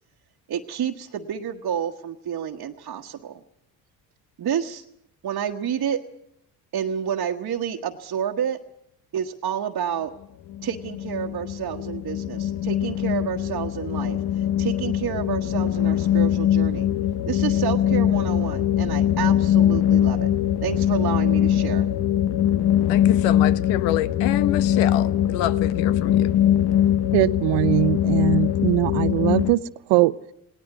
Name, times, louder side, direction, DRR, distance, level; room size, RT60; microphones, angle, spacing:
voice 1, 0.5-3.4 4.4-4.8 5.2-6.0 6.7-8.6 9.1-10.1 10.6-14.2 14.6-16.9 17.3-20.3 20.6-21.9, right 8 dB, 50° right, 1.3 m, -29 dB
sound 1, 10.5-29.5, left 11 dB, 65° left, 1.0 m, -22 dB
voice 2, 22.9-26.3, left 13 dB, 85° left, 1.0 m, -27 dB
voice 3, 27.1-29.6 29.9-30.1, right 19 dB, 75° right, 0.8 m, -21 dB
18.5 x 18.5 x 9.3 m
supercardioid pair, 70°, 43 cm